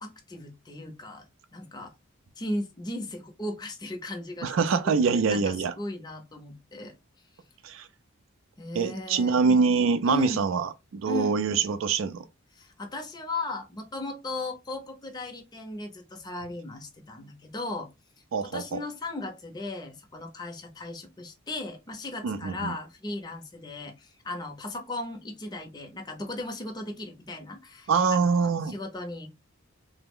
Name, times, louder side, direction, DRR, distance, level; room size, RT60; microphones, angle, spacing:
voice 1, 0.0-1.2 1.5-1.9 2.4-4.5 5.0-6.9 8.6-9.5 10.0-10.4 11.1-11.4 12.5-17.9 18.4-29.3, left 2 dB, 20° left, 0.6 m, -37 dB
voice 2, 4.4-5.7 7.6-7.9 8.8-12.2 18.3-18.8 22.2-22.7 27.9-28.7, right 5 dB, 70° right, 0.4 m, -24 dB
3.2 x 2.0 x 3.5 m
head